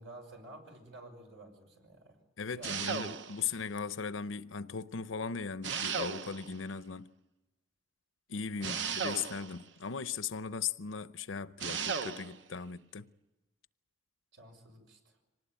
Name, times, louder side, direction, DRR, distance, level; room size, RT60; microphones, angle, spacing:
voice 1, 0.0-2.2 2.5-3.0 3.4-3.5 8.6-8.8 14.3-15.2, right 2 dB, 90° right, 5.7 m, -51 dB
voice 2, 2.4-7.1 8.3-13.1, left 6 dB, 90° left, 0.7 m, -38 dB
sound 1, 2.6-3.5 5.6-6.6 8.6-9.6 11.6-12.4, right 6 dB, 70° right, 0.8 m, -36 dB
25.5 x 19.0 x 8.8 m
head